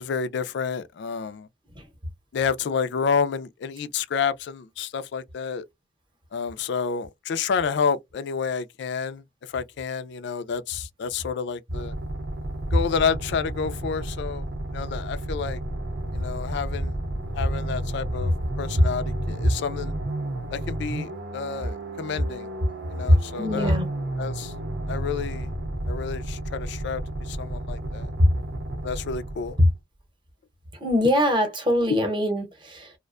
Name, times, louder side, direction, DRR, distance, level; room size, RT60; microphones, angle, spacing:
voice 1, 0.0-1.5 2.3-5.6 6.3-11.9 12.7-14.5 14.7-15.6 16.1-16.9 17.3-18.3 18.6-19.9 20.5-22.5 22.9-23.8 24.2-24.5 24.9-25.5 25.9-27.0 27.3-28.1 28.8-29.6, left 6 dB, 65° left, 0.4 m, -29 dB
sound 1, 11.7-29.8, right 1 dB, 70° right, 0.6 m, -32 dB
voice 2, 23.1-23.9 28.2-28.3 29.6-29.7 30.7-32.9, left 1 dB, 25° right, 0.8 m, -22 dB
2.4 x 2.1 x 2.3 m
head